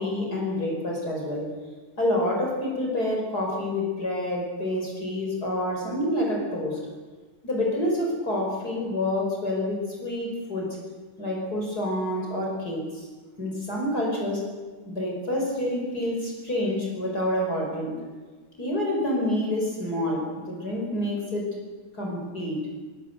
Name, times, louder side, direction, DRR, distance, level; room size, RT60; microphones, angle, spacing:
voice 1, 0.0-1.5 2.0-6.8 7.4-10.7 11.2-13.1 13.4-14.4 14.8-18.0 18.6-21.6 21.9-22.7, left 1 dB, 45° left, -1 dB, 5.9 m, -28 dB
24.0 x 20.5 x 8.0 m, 1.4 s
omnidirectional pair, 2.3 m